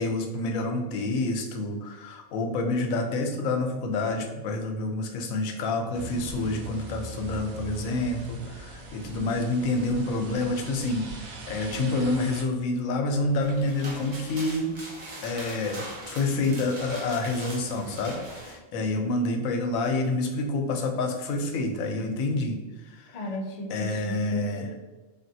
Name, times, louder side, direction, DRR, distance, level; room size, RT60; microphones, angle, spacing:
voice 1, 0.0-14.7 15.2-15.8 16.1-22.6 22.9-23.1 23.7-24.7, left 2 dB, 90° left, 4 dB, 1.0 m, -28 dB
sound 1, 5.9-12.4, right 2 dB, 85° right, 1.1 m, -41 dB
sound 2, 13.2-18.6, right 1 dB, 40° right, 0.6 m, -41 dB
voice 2, 23.1-24.8, left 1 dB, 65° left, 1 dB, 0.4 m, -37 dB
3.6 x 2.5 x 2.6 m, 1.2 s
omnidirectional pair, 1.4 m